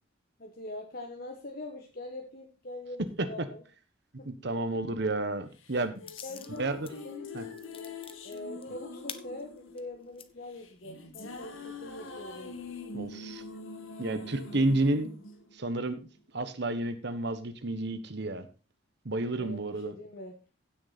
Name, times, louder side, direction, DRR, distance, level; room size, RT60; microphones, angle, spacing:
voice 1, 0.4-3.6 4.2-4.3 4.7-4.8 6.2-6.7 7.0-8.0 8.2-12.5 19.4-20.4, left 2 dB, 50° left, 2 dB, 1.4 m, -43 dB
voice 2, 4.2-6.0 6.6-6.9 7.3-7.4 12.9-13.4 14.0-15.1 15.5-16.0 16.3-18.5 19.0-19.9, right 2 dB, 55° right, 10 dB, 1.2 m, -31 dB
sound 1, 5.6-16.0, left 3 dB, 80° left, 1.9 m, -44 dB
sound 2, 6.1-6.9 7.3-10.3 10.8-10.9 11.3-12.2, left 8 dB, 30° left, 0.9 m, -47 dB
16.0 x 6.6 x 4.2 m, 0.32 s
head